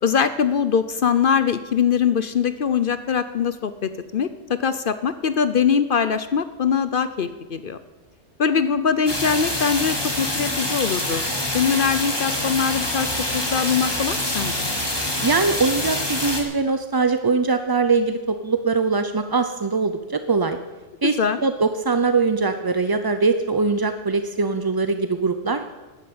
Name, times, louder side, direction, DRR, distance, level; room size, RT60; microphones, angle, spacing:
voice 1, 0.0-7.8 8.4-11.3 11.5-14.7 21.2-21.4, left 7 dB, 50° left, 12 dB, 0.8 m, -22 dB
sound 1, 9.1-16.4, left 1 dB, 20° left, 2.1 m, -26 dB
voice 2, 15.2-20.6 21.0-21.2 21.4-25.6, right 4 dB, 30° right, 9 dB, 0.4 m, -22 dB
12.5 x 10.5 x 8.6 m, 1.2 s
omnidirectional pair, 1.2 m